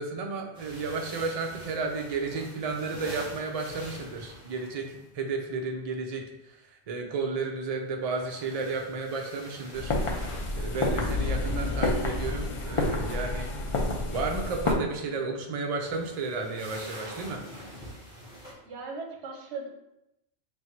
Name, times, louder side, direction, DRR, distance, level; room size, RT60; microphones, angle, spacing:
voice 1, 0.0-9.9 10.6-13.5 14.1-17.4, right 4 dB, 45° right, 1 dB, 0.5 m, -33 dB
sound 1, 0.5-5.1 7.9-11.9 15.6-18.5, equal, 5° right, 1.3 m, -46 dB
sound 2, 9.7-14.7, left 2 dB, 45° left, 0.4 m, -29 dB
voice 2, 18.6-19.7, right 4 dB, 75° right, 1 dB, 1.0 m, -38 dB
3.4 x 2.7 x 4.3 m, 0.87 s
omnidirectional pair, 1.2 m